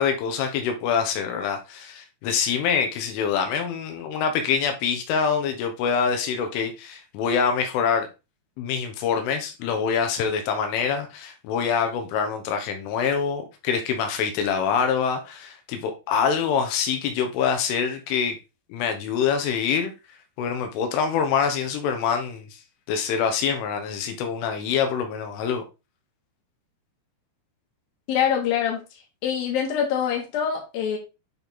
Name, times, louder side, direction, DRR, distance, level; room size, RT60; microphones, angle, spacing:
voice 1, 0.0-8.1 8.6-18.4 18.7-19.9 20.4-22.6 22.9-25.6, left 6 dB, 85° left, 3.6 m, -25 dB
voice 2, 28.1-28.8 29.2-31.0, left 8 dB, 55° left, 3.4 m, -24 dB
9.8 x 4.1 x 3.8 m
omnidirectional pair, 5.5 m